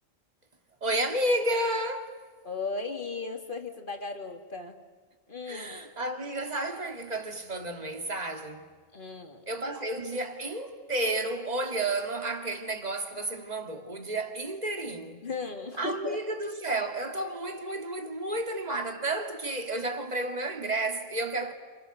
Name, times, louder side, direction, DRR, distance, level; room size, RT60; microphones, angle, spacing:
voice 1, 0.8-2.2 5.4-8.7 9.5-15.3 15.8-21.5, right 1 dB, 30° right, 2.4 m, -31 dB
voice 2, 2.4-4.8 5.3-5.8 8.9-9.4 15.2-16.2, left 3 dB, 40° left, 2.3 m, -36 dB
29.5 x 29.0 x 6.6 m
omnidirectional pair, 1.4 m